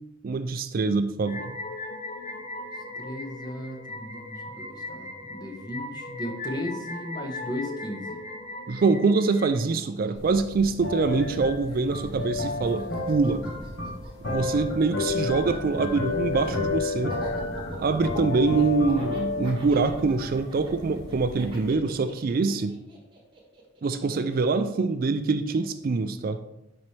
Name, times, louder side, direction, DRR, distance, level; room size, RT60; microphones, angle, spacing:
voice 1, 0.2-1.6 8.7-13.4 14.2-17.2 17.8-22.8 23.8-26.4, right 4 dB, 45° right, 10 dB, 0.4 m, -24 dB
sound 1, 1.3-9.5, left 2 dB, 35° left, 0.6 m, -38 dB
voice 2, 3.0-8.2, left 1 dB, 20° left, 2 dB, 1.0 m, -36 dB
Laughter, 8.7-8.8 9.0-11.4 11.7-24.7, right 1 dB, 25° right, 1.4 m, -44 dB
sound 2, 10.1-21.7, left 3 dB, 55° left, 1.4 m, -32 dB
10.0 x 4.2 x 3.2 m, 0.90 s
head